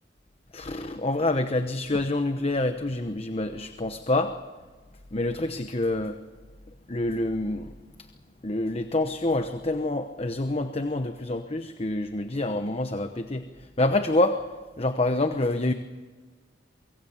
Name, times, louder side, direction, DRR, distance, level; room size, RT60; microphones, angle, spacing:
voice 1, 0.5-4.4 5.1-6.2 6.9-8.1 8.4-14.5 14.8-15.7, left 2 dB, 30° left, 8 dB, 1.0 m, -27 dB
24.0 x 23.5 x 7.2 m, 1.4 s
head